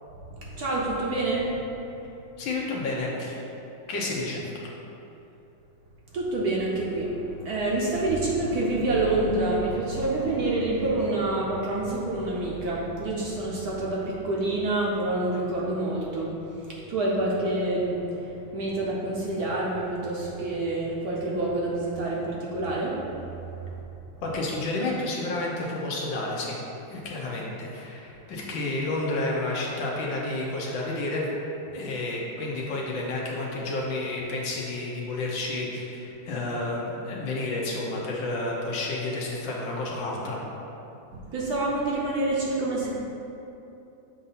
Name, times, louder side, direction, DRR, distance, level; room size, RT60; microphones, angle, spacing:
voice 1, 0.3-1.6 6.1-18.0 18.5-23.0 41.1-43.0, right 2 dB, 60° right, -5 dB, 1.1 m, -27 dB
voice 2, 2.4-3.4 3.9-4.4 24.2-26.6 26.9-31.3 31.7-40.4, left 2 dB, 75° left, -3 dB, 1.7 m, -30 dB
7.4 x 2.7 x 5.6 m, 2.9 s
omnidirectional pair, 2.1 m